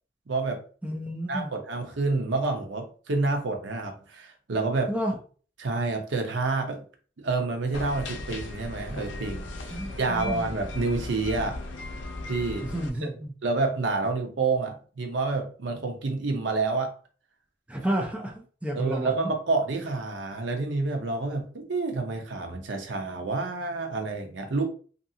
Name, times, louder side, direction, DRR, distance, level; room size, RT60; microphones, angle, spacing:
voice 1, 0.3-0.6 1.3-4.9 5.6-6.8 7.2-11.6 12.3-12.7 13.0-13.1 13.4-16.9 18.8-24.6, right 3 dB, 80° right, 4 dB, 0.6 m, -28 dB
voice 2, 0.8-1.5 4.9-5.2 9.7-10.5 12.6-13.3 17.7-19.3, right 1 dB, 5° right, 0 dB, 0.4 m, -31 dB
sound 1, 7.7-12.9, left 2 dB, 90° left, 0.5 m, -37 dB
2.6 x 2.3 x 2.7 m, 0.41 s
head